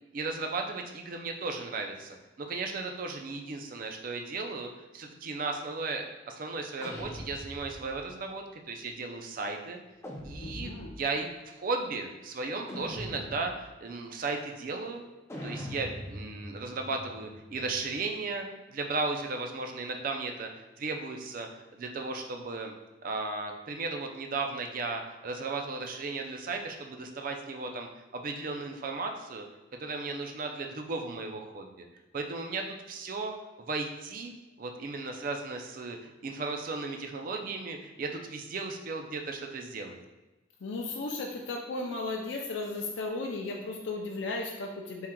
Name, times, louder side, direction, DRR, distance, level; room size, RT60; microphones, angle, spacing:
voice 1, 0.1-9.8 10.2-15.1 15.4-22.7 23.0-29.4 29.8-31.9 32.1-34.3 34.6-40.0, right 3 dB, 50° right, 4 dB, 0.4 m, -35 dB
sound 1, 6.8-8.1 10.0-11.1 12.7-13.7 15.3-18.0, equal, 15° left, 0.4 m, -42 dB
voice 2, 10.4-10.9 40.6-45.1, left 3 dB, 75° left, 0 dB, 0.4 m, -35 dB
4.3 x 3.6 x 2.2 m, 1.1 s
head